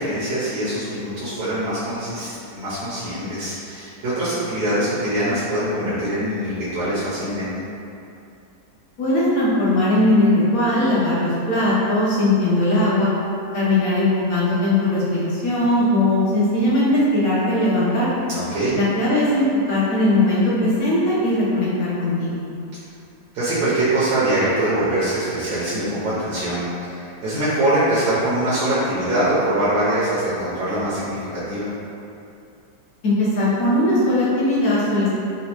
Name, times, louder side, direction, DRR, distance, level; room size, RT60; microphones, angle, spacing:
voice 1, 0.0-7.5 18.3-18.7 23.3-31.7, right 1 dB, 75° right, -11 dB, 1.2 m, -23 dB
voice 2, 9.0-13.1 13.5-18.1 18.7-22.4 33.0-35.1, left 1 dB, 65° left, -8 dB, 1.0 m, -19 dB
4.0 x 2.2 x 2.8 m, 2.7 s
omnidirectional pair, 1.8 m